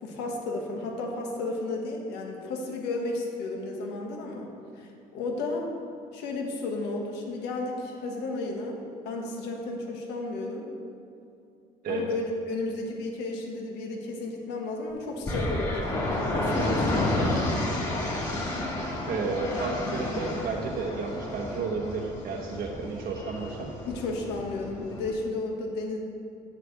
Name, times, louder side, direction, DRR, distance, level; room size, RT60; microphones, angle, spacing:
voice 1, 0.0-4.5 4.8-5.7 6.1-8.8 9.0-10.7 11.9-17.7 23.9-26.0, left 2 dB, 90° left, 0 dB, 1.4 m, -33 dB
sound 1, 15.3-25.1, left 1 dB, 20° left, 2.0 m, -31 dB
voice 2, 19.1-23.7, right 4 dB, 60° right, 0 dB, 1.0 m, -32 dB
9.7 x 4.9 x 6.2 m, 2.6 s
cardioid pair, 110°, 17 cm